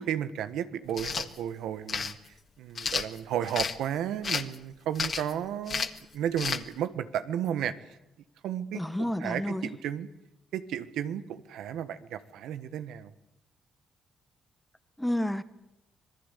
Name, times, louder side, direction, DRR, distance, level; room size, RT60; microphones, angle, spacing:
voice 1, 0.0-5.9 6.1-7.7 8.4-10.1 10.5-13.1, right 10 dB, 85° right, 12 dB, 1.4 m, -33 dB
sound 1, 0.9-1.3 1.9-2.1 2.8-3.8 4.2-4.6 5.0-5.3 5.7-6.0 6.4-6.6, left 6 dB, 45° left, 1.6 m, -31 dB
voice 2, 8.7-9.7 15.0-15.4, left 1 dB, 5° left, 13 dB, 1.4 m, -30 dB
26.0 x 18.5 x 8.4 m, 0.90 s
cardioid pair, 90°, 0 cm